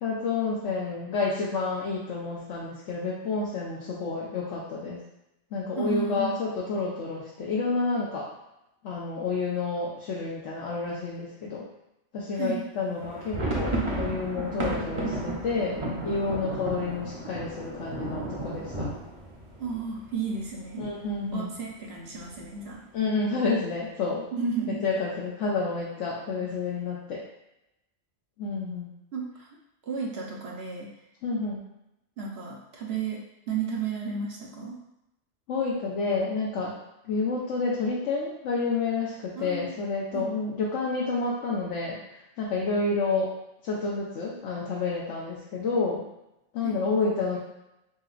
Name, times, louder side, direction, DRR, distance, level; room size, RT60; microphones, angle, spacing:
voice 1, 0.0-5.0 5.5-8.3 8.8-11.6 12.1-18.9 20.8-21.5 22.9-24.2 24.8-27.2 28.4-28.9 31.2-31.6 35.5-36.8 37.1-42.0 42.4-43.3 43.6-46.0 46.5-47.4, left 4 dB, 80° left, -5 dB, 1.0 m, -29 dB
voice 2, 5.8-6.4 12.3-12.6 19.6-20.8 21.3-22.8 24.3-24.8 29.1-29.5 29.8-30.9 32.2-34.8 39.3-39.7 40.1-40.2 46.6-46.8, right 5 dB, 65° right, -2 dB, 1.0 m, -33 dB
sound 1, 13.0-20.7 21.0-21.1 21.4-21.6 22.2-22.6, right 2 dB, 35° right, 0.6 m, -33 dB
4.2 x 3.8 x 2.4 m, 0.87 s
omnidirectional pair, 1.2 m